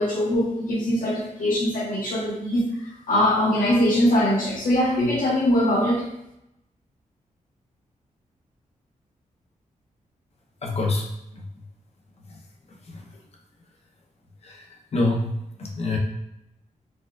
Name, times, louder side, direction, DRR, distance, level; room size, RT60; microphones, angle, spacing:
voice 1, 0.0-2.6 3.1-6.1, left 1 dB, 80° left, -4 dB, 1.1 m, -22 dB
voice 2, 10.6-11.1 11.3-11.4 12.9-13.1 14.4-14.7 14.9-15.3 15.6-16.0, left 2 dB, 50° left, 0 dB, 0.6 m, -25 dB
4.2 x 2.3 x 2.3 m, 0.81 s
wide cardioid pair, 145°, 14 cm